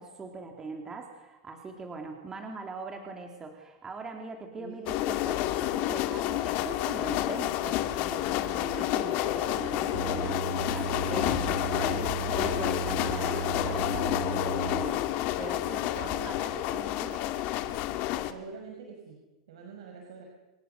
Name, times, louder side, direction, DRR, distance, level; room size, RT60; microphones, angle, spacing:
voice 1, 0.0-12.0 12.3-15.0 15.4-17.2, right 3 dB, 20° right, 3 dB, 3.5 m, -41 dB
sound 1, 4.9-18.3, left 14 dB, 50° left, 2.2 m, -29 dB
sound 2, 9.9-14.8, right 9 dB, 50° right, 1.6 m, -36 dB
voice 2, 11.3-12.2 16.0-16.6 18.3-20.3, right 5 dB, 75° right, 2 dB, 5.8 m, -46 dB
29.0 x 23.0 x 6.9 m, 1.0 s
hypercardioid pair, 120°, 3 cm